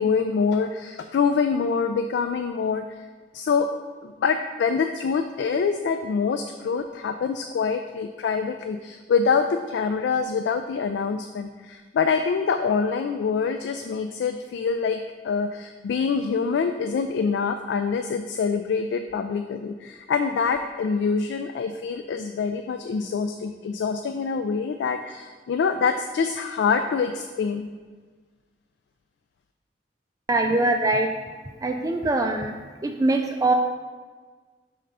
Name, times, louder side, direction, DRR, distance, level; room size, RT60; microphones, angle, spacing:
voice 1, 0.0-3.1 3.3-3.7 4.0-27.7, left 5 dB, 85° left, 7 dB, 0.3 m, -25 dB
voice 2, 30.3-31.1 31.6-32.5 32.8-33.5, right 2 dB, 20° right, 4 dB, 0.3 m, -22 dB
5.3 x 3.8 x 5.5 m, 1.5 s
head